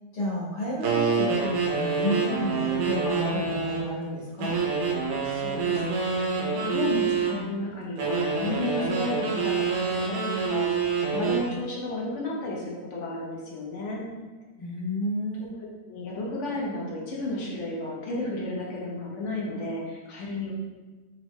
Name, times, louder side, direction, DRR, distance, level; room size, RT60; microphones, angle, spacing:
voice 1, 0.1-4.5 14.6-15.5, equal, 80° left, -8 dB, 1.7 m, -31 dB
sound 1, 0.8-3.9 4.4-7.4 8.0-11.5, right 5 dB, 85° right, 1.3 m, -27 dB
voice 2, 5.2-14.1 15.9-20.5, left 2 dB, 60° left, -3 dB, 0.8 m, -33 dB
3.6 x 2.1 x 3.4 m, 1.2 s
omnidirectional pair, 1.8 m